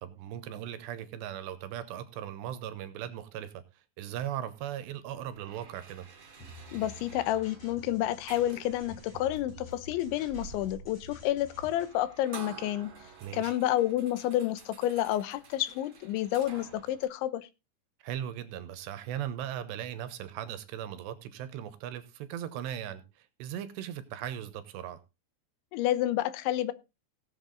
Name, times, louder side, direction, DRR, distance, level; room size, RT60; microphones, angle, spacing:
voice 1, 0.0-3.6 4.0-6.1 13.2-13.5 18.0-25.0, right 10 dB, 75° right, 2.9 m, -38 dB
sound 1, 5.1-17.1, right 6 dB, 40° right, 1.9 m, -51 dB
sound 2, 6.4-11.9, equal, 35° left, 7.1 m, -49 dB
voice 2, 6.7-12.9 13.3-17.5 25.7-26.7, left 13 dB, 80° left, 3.1 m, -30 dB
17.0 x 8.0 x 3.9 m
omnidirectional pair, 5.3 m